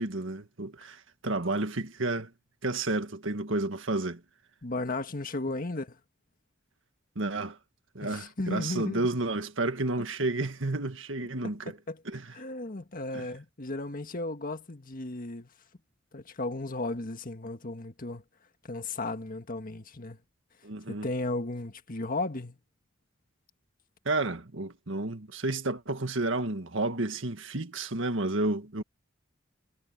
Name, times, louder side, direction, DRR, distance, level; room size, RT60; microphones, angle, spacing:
voice 1, 0.0-2.3 2.6-4.2 7.2-7.6 8.0-11.8 12.1-12.2 13.1-13.2 20.6-21.1 24.1-28.8, right 2 dB, 70° right, 1.9 m, -31 dB
voice 2, 4.6-6.0 8.0-9.1 11.7-12.0 12.3-15.5 16.1-18.2 18.6-20.2 20.9-22.6, left 2 dB, 45° left, 1.7 m, -35 dB
head